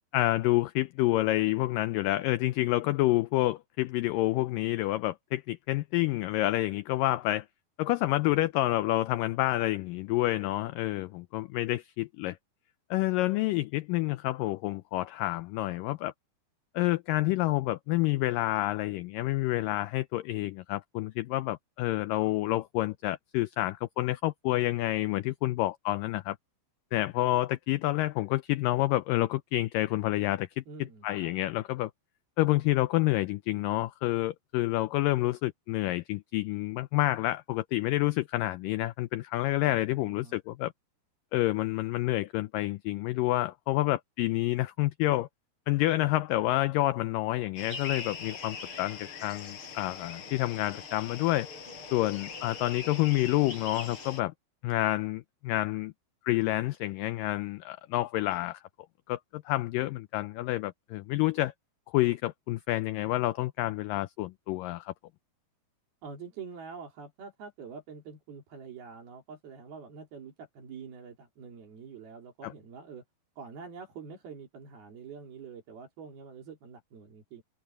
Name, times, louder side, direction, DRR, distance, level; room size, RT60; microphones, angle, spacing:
voice 1, 0.1-7.5 7.8-12.4 12.9-16.1 16.8-26.4 26.9-30.6 31.0-31.9 32.4-40.7 41.3-45.3 45.7-51.5 51.9-54.3 54.6-55.9 56.3-58.6 59.1-61.5 61.9-64.9 72.4-72.5, left 17 dB, 85° left, 1.9 m, -28 dB
voice 2, 30.7-31.4 39.6-40.4 66.0-73.0 73.4-77.4, right 5 dB, 70° right, 5.7 m, -46 dB
sound 1, 47.6-54.2, left 5 dB, 30° left, 8.0 m, -41 dB
omnidirectional pair, 4.5 m